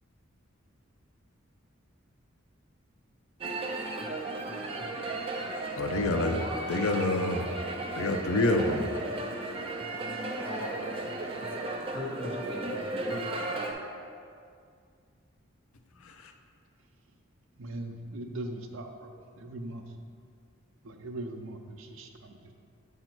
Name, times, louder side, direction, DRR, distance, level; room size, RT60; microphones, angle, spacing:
sound 1, 3.4-13.7, right 2 dB, 25° right, 0.5 m, -35 dB
voice 1, 5.8-6.4 6.7-7.5 7.9-8.8 16.0-16.3, left 2 dB, 80° left, 5 dB, 0.5 m, -27 dB
voice 2, 9.9-10.9 11.9-13.4, left 1 dB, 25° left, -4 dB, 1.1 m, -39 dB
voice 3, 17.6-20.0 20.8-22.5, right 1 dB, 70° right, 4 dB, 0.6 m, -40 dB
7.7 x 2.8 x 5.9 m, 2.2 s
head